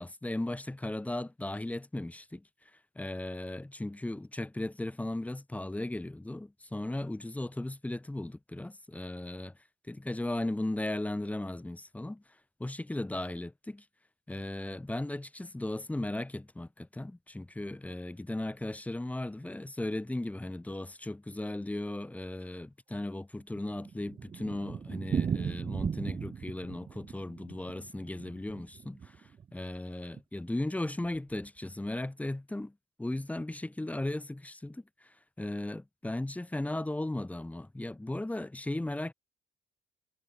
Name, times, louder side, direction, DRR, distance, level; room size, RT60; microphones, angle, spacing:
voice 1, 0.0-2.5 3.0-9.5 9.9-12.2 12.6-13.9 14.3-39.1, left 1 dB, 10° left, 2.1 m, -36 dB
Thunder, 23.2-29.5 29.7-29.8 30.1-30.2 30.5-30.6 31.1-31.5, right 7 dB, 30° right, 0.6 m, -37 dB
cardioid pair, 110°, 17 cm